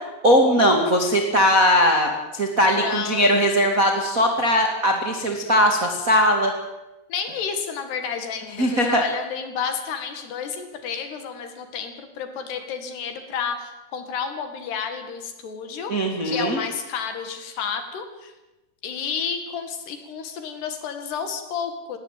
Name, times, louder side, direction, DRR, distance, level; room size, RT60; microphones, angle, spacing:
voice 1, 0.2-6.5 8.6-9.0 15.9-16.6, equal, 40° right, 2 dB, 1.2 m, -19 dB
voice 2, 2.7-3.3 7.1-15.9 16.2-18.3 18.8-22.0, left 6 dB, 60° left, 7 dB, 3.8 m, -31 dB
19.0 x 18.0 x 9.2 m, 1.0 s
omnidirectional pair, 5.8 m